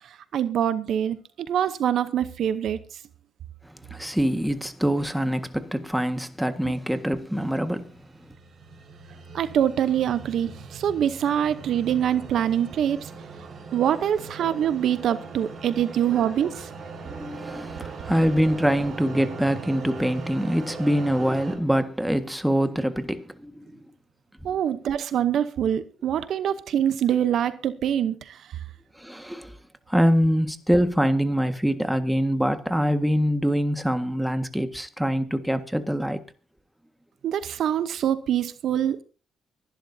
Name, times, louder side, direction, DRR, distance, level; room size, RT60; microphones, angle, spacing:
voice 1, 0.3-2.8 9.3-13.1 13.7-16.7 24.4-28.4 37.2-39.0, right 10 dB, 70° right, 0.8 m, -24 dB
voice 2, 3.6-8.0 15.8-15.9 17.0-23.8 24.4-24.6 29.0-29.6 29.9-36.2, equal, 5° right, 1.6 m, -24 dB
sound 1, 7.5-21.6, right 4 dB, 50° right, 4.8 m, -40 dB
24.5 x 11.5 x 2.8 m
cardioid pair, 90°, 0 cm